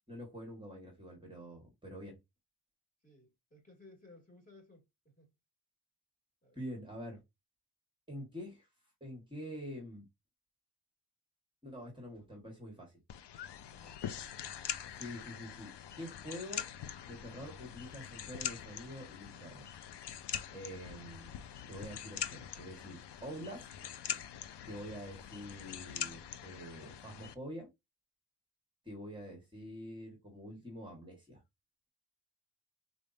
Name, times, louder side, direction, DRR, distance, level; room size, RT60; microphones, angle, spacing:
voice 1, 0.1-2.2 6.5-7.2 8.1-8.7 9.0-10.0 11.6-13.0 14.9-16.7 17.1-19.7 20.5-21.3 21.7-23.7 24.0-24.2 24.6-27.7 28.8-31.4, equal, 10° right, 1.3 m, -46 dB
voice 2, 3.0-5.3 6.4-6.6 13.6-14.7, left 2 dB, 20° left, 2.0 m, -60 dB
sound 1, 13.1-27.3, left 9 dB, 85° left, 0.6 m, -43 dB
4.0 x 3.4 x 2.6 m
wide cardioid pair, 165°, 40 cm